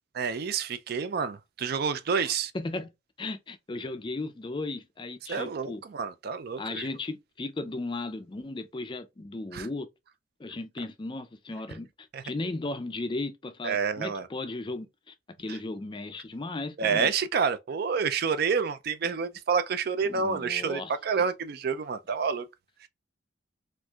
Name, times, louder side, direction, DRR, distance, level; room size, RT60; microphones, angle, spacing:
voice 1, 0.2-2.5 5.3-6.9 9.5-9.7 12.1-12.2 13.6-14.3 16.8-22.5, right 5 dB, 50° right, 0.4 m, -28 dB
voice 2, 2.1-2.9 3.2-5.8 6.6-9.9 10.4-17.1 20.0-20.9, left 2 dB, 25° left, 0.4 m, -36 dB
4.4 x 2.5 x 2.3 m
head